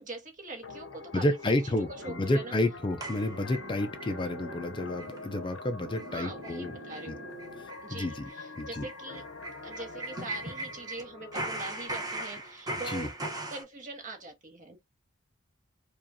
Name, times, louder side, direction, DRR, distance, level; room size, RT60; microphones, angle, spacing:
voice 1, 0.0-2.5 6.1-7.3 7.8-9.2 9.6-13.1 13.5-14.8, right 3 dB, 40° right, 1.4 m, -43 dB
sound 1, 0.6-11.9, left 3 dB, 70° left, 0.7 m, -45 dB
voice 2, 1.1-6.7 7.1-7.2 7.6-8.3 8.6-8.9 12.8-13.1, left 1 dB, 25° left, 0.4 m, -30 dB
sound 2, 2.0-8.0, right 3 dB, 60° right, 1.1 m, -47 dB
sound 3, 3.0-4.1 4.5-4.6 5.0-5.2 5.5-5.6 5.9-6.1 6.4-6.6 6.9-7.0 7.4-11.0 11.3-13.6, right 1 dB, 20° right, 0.9 m, -38 dB
4.8 x 2.4 x 2.7 m
head